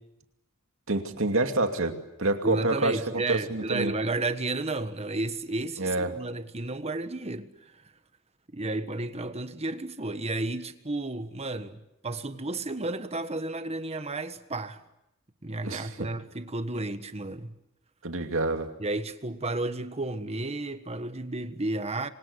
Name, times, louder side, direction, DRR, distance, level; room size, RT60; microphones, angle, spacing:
voice 1, 0.9-3.0 3.3-3.9 5.8-6.1 15.6-16.1 18.0-18.7, right 2 dB, 70° right, 2.6 m, -27 dB
voice 2, 2.4-7.5 8.5-14.8 15.4-17.6 18.8-22.1, right 2 dB, 30° right, 1.5 m, -32 dB
28.0 x 24.5 x 8.2 m
head